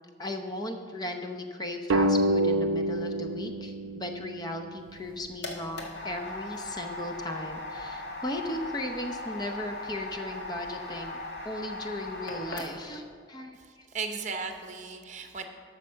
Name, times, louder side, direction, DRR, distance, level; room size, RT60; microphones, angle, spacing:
voice 1, 0.2-11.2 11.4-13.9, left 1 dB, 20° left, 5 dB, 0.7 m, -36 dB
sound 1, 1.9-5.1, right 1 dB, 85° right, 0.5 m, -28 dB
sound 2, 4.9-13.0, left 2 dB, 55° left, 1.5 m, -39 dB
voice 2, 13.5-15.5, right 4 dB, 40° right, 5 dB, 0.9 m, -36 dB
12.0 x 6.5 x 5.7 m, 2.1 s
head